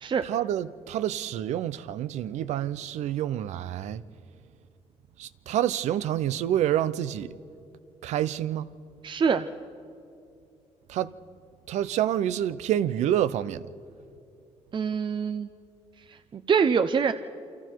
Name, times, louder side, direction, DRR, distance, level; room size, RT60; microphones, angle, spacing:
voice 1, 0.2-4.0 5.2-7.3 8.0-8.7 10.9-11.1 11.7-13.6, right 11 dB, 85° right, 0.7 m, -28 dB
voice 2, 9.0-9.5 14.7-15.5 16.1-17.1, right 6 dB, 45° right, 0.7 m, -25 dB
29.0 x 25.5 x 4.6 m
cardioid pair, 90°, 12 cm